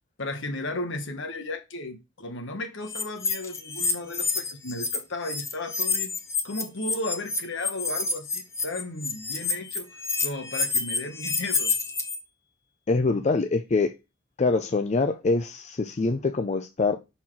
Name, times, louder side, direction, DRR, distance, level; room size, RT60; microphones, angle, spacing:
voice 1, 0.2-6.1 6.4-11.8, left 2 dB, 65° left, 1.3 m, -35 dB
sound 1, 2.9-5.0 5.2-12.1, left 4 dB, 15° left, 1.1 m, -28 dB
voice 2, 12.9-13.9 14.4-17.0, left 3 dB, 35° left, 0.5 m, -24 dB
6.1 x 4.3 x 3.7 m
head